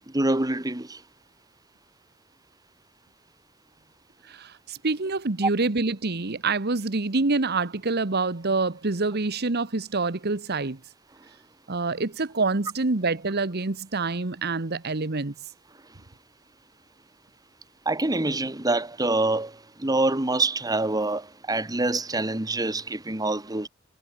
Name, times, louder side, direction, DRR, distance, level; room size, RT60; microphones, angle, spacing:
voice 1, 0.1-1.0 17.8-23.7, right 2 dB, 20° right, 1.5 m, -26 dB
voice 2, 4.2-10.8 11.7-15.3, right 3 dB, 50° right, 1.2 m, -26 dB
head